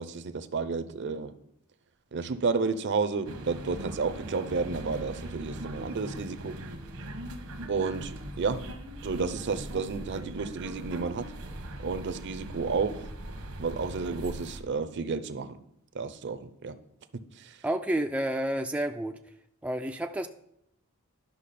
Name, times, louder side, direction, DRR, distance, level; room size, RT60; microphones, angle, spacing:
voice 1, 0.0-1.3 2.1-6.6 7.7-8.7 9.0-11.3 11.8-13.1 13.6-15.6 15.9-16.8 17.1-17.6, right 4 dB, 55° right, 13 dB, 0.6 m, -31 dB
sound 1, 3.2-14.6, right 1 dB, 80° right, 1.1 m, -41 dB
voice 2, 17.6-19.2 19.6-20.3, right 1 dB, 5° right, 5 dB, 0.3 m, -30 dB
11.5 x 5.7 x 4.2 m, 0.75 s
head